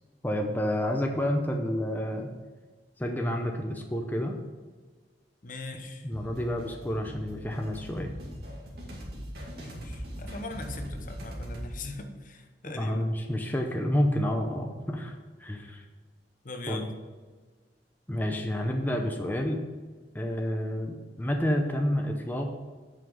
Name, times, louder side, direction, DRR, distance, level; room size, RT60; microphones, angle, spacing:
voice 1, 0.2-2.3 3.0-4.4 6.0-8.1 12.6-15.8 16.7-16.9 18.1-19.6 20.1-22.5, equal, 10° left, 2 dB, 0.6 m, -29 dB
voice 2, 5.4-6.1 9.5-13.1 16.4-17.0, left 2 dB, 50° left, 6 dB, 1.0 m, -40 dB
sound 1, 6.1-11.7, equal, 65° right, 2.1 m, -40 dB
8.0 x 5.7 x 5.4 m, 1.4 s
head